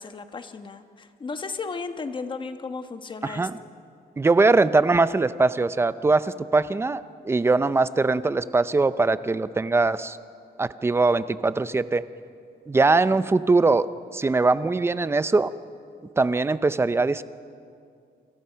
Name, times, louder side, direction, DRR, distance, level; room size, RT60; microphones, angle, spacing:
voice 1, 0.0-3.5, left 4 dB, 30° left, 8 dB, 1.2 m, -35 dB
voice 2, 3.2-3.5 4.2-10.2 10.6-12.0 12.7-15.5 16.2-17.2, right 3 dB, 15° right, 14 dB, 0.5 m, -21 dB
28.5 x 26.5 x 5.7 m, 2.4 s
wide cardioid pair, 175°, 17 cm